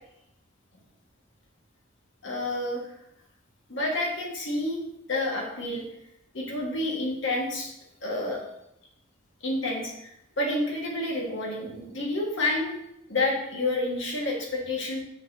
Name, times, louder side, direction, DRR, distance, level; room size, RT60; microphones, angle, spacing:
voice 1, 2.2-2.9 3.7-5.8 6.3-7.7 8.0-8.4 9.4-12.8 13.1-15.0, left 2 dB, 70° left, -1 dB, 1.6 m, -29 dB
6.2 x 5.8 x 2.7 m, 0.80 s
head